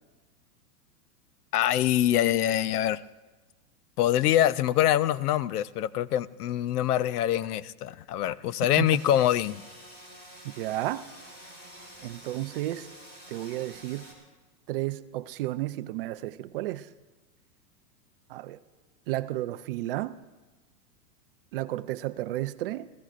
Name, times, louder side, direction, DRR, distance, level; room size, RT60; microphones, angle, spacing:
voice 1, 1.5-3.0 4.0-9.6, left 12 dB, 75° left, 0.7 m, -24 dB
sound 1, 8.8-14.1, equal, 20° left, 4.1 m, -48 dB
voice 2, 10.4-11.1 12.0-12.9 13.3-14.1 14.7-16.9 18.3-18.6 19.1-20.2 21.5-22.9, right 16 dB, 40° right, 0.4 m, -32 dB
27.0 x 15.5 x 2.5 m
hypercardioid pair, 135°, 46 cm